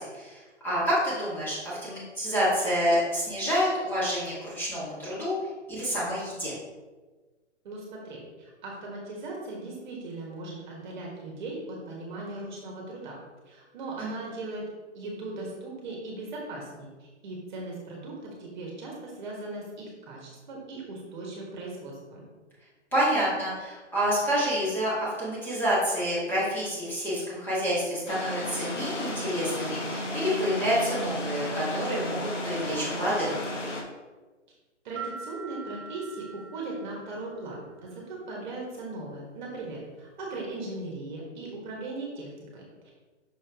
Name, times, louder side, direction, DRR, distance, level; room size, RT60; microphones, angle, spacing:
voice 1, 0.0-5.3 5.7-6.5 14.0-14.1 22.9-33.4, equal, 5° left, -10 dB, 1.8 m, -28 dB
voice 2, 7.6-13.1 13.5-14.6 14.9-16.9 17.2-22.2 34.8-42.9, right 2 dB, 40° right, -2 dB, 1.6 m, -38 dB
sound 1, 28.1-33.8, left 1 dB, 85° left, 1.5 m, -33 dB
sound 2, 35.0-37.6, right 5 dB, 10° right, 0.8 m, -42 dB
6.3 x 4.3 x 3.6 m, 1.3 s
hypercardioid pair, 145°, 36 cm